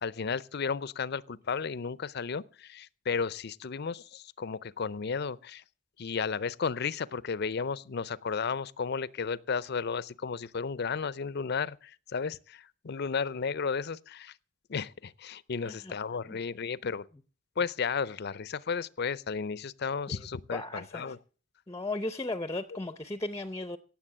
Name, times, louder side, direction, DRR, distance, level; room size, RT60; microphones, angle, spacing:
voice 1, 0.0-5.6 6.0-14.3 14.7-17.1 17.6-21.2, left 5 dB, 60° left, 0.6 m, -33 dB
voice 2, 15.6-15.9 16.3-16.4 20.1-21.1 21.7-23.8, left 2 dB, 15° left, 0.6 m, -36 dB
17.5 x 7.4 x 7.3 m
head